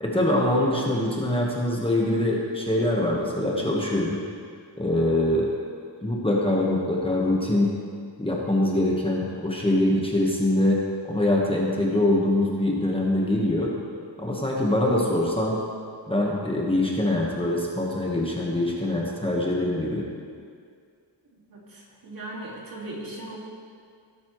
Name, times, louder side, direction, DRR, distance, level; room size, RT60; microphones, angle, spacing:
voice 1, 0.0-4.2 4.8-5.5 6.0-7.7 8.2-13.7 14.2-15.6 16.1-20.0, left 1 dB, 10° left, -3 dB, 1.3 m, -24 dB
voice 2, 21.5-23.4, right 1 dB, 50° right, -4 dB, 2.3 m, -38 dB
17.5 x 8.5 x 3.1 m, 2.2 s
wide cardioid pair, 155°, 43 cm